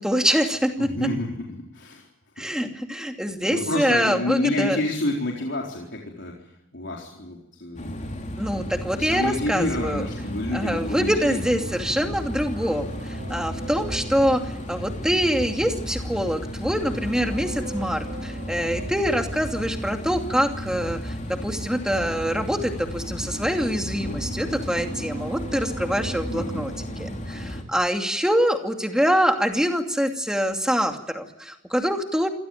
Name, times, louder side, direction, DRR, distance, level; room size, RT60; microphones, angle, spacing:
voice 1, 0.0-1.1 2.4-4.8 8.4-10.0 10.5-26.7 27.0-32.3, equal, 5° right, 4 dB, 2.6 m, -25 dB
voice 2, 0.8-2.1 3.5-6.4 6.7-8.2 8.9-11.4 26.3-26.7, left 1 dB, 65° left, -1 dB, 4.2 m, -29 dB
sound 1, 7.8-27.6, equal, 40° left, 3.9 m, -33 dB
sound 2, 9.9-15.6 16.7-19.7 22.5-27.7 28.0-28.1, right 2 dB, 50° right, 3.9 m, -41 dB
27.0 x 16.5 x 9.3 m, 0.83 s
head